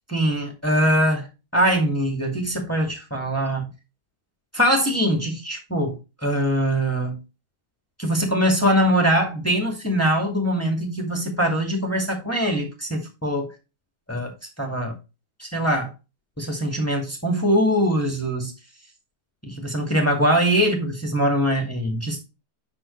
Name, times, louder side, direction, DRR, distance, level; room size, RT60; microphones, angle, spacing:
voice 1, 0.1-1.3 1.5-3.7 4.5-7.2 8.0-13.5 14.1-15.0 15.4-15.9 16.4-18.5 19.5-22.2, equal, 10° left, 2.3 m, -22 dB
9.8 x 6.2 x 3.3 m
omnidirectional pair, 1.8 m